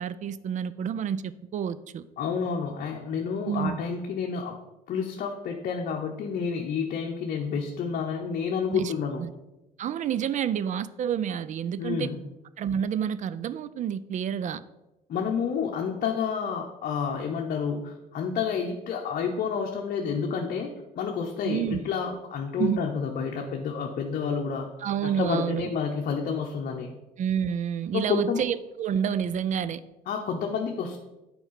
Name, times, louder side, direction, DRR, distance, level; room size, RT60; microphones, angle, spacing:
voice 1, 0.0-2.0 3.4-3.8 8.7-8.9 9.2-9.3 9.8-12.1 12.6-14.6 21.4-21.8 22.6-22.9 24.8-25.7 27.2-29.8, right 8 dB, 45° right, 16 dB, 0.4 m, -29 dB
voice 2, 2.2-4.6 4.9-9.2 11.8-12.2 15.1-24.7 25.0-27.0 27.9-28.4 30.1-31.0, left 6 dB, 55° left, 1 dB, 0.9 m, -29 dB
8.2 x 4.7 x 5.7 m, 0.99 s
cardioid pair, 110°, 17 cm